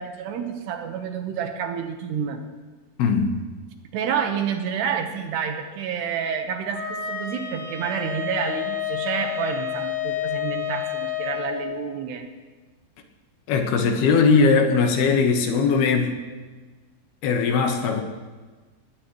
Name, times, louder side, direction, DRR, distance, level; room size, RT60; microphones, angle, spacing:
voice 1, 0.0-2.4 3.9-12.3, right 7 dB, 75° right, 5 dB, 3.3 m, -29 dB
voice 2, 3.0-3.4 13.5-16.1 17.2-18.0, left 5 dB, 70° left, 4 dB, 3.2 m, -19 dB
Wind instrument woodwind instrument, 6.7-11.5, left 9 dB, 50° left, 3.8 m, -29 dB
20.5 x 18.5 x 3.2 m, 1.3 s
omnidirectional pair, 4.9 m